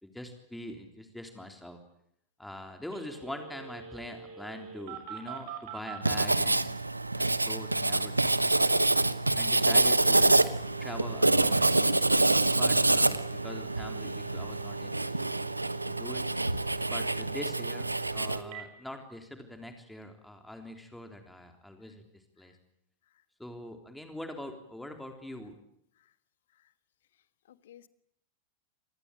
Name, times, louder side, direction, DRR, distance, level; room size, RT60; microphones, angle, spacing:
voice 1, 0.0-1.8 2.4-6.8 7.1-8.8 9.4-10.4 10.8-11.6 12.6-15.3 15.9-16.3 16.9-22.0 22.4-22.5 23.4-25.6, left 1 dB, 5° left, 5 dB, 3.6 m, -43 dB
Telephone, 2.9-6.0 10.5-18.6, right 7 dB, 50° right, 6.1 m, -45 dB
Writing, 6.0-18.4, right 2 dB, 85° right, 1.0 m, -26 dB
voice 2, 27.5-27.9, left 11 dB, 60° left, 15 dB, 1.4 m, -56 dB
27.5 x 19.5 x 9.1 m, 0.72 s
figure-of-eight pair, 90°, 0 cm